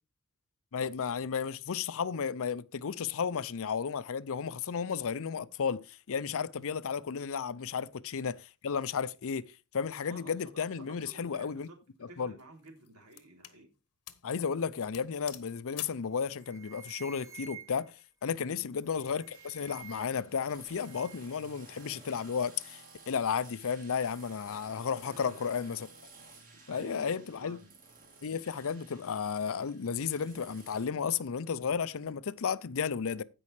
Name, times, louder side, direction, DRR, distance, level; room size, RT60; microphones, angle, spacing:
voice 1, 0.7-8.4 8.6-9.4 9.7-11.7 12.2-12.3 14.2-17.9 18.2-25.9 26.7-27.6 28.2-33.2, left 6 dB, 65° left, 0.5 m, -33 dB
voice 2, 10.0-13.7 18.4-18.6 25.0-25.4 26.5-27.7, right 1 dB, 75° right, 3.3 m, -52 dB
sound 1, 11.4-11.7 12.4-13.6 14.1-14.3 14.6-14.7 14.9-16.1, left 12 dB, 85° left, 1.1 m, -47 dB
sound 2, 16.1-16.2 16.4-18.0 18.8-20.3 20.6-21.4, right 8 dB, 15° right, 0.9 m, -51 dB
sound 3, 19.3-30.9, right 3 dB, 40° right, 2.7 m, -55 dB
15.5 x 5.4 x 3.2 m
head